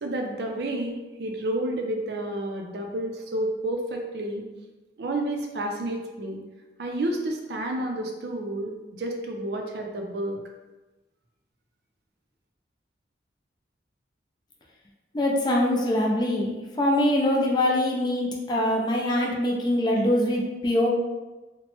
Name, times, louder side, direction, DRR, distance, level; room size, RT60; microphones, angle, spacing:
voice 1, 0.0-4.5 5.0-6.4 6.8-10.4, right 1 dB, 65° right, 1 dB, 0.4 m, -30 dB
voice 2, 15.1-20.9, left 1 dB, 25° left, -2 dB, 0.4 m, -23 dB
2.9 x 2.1 x 2.9 m, 1.1 s
head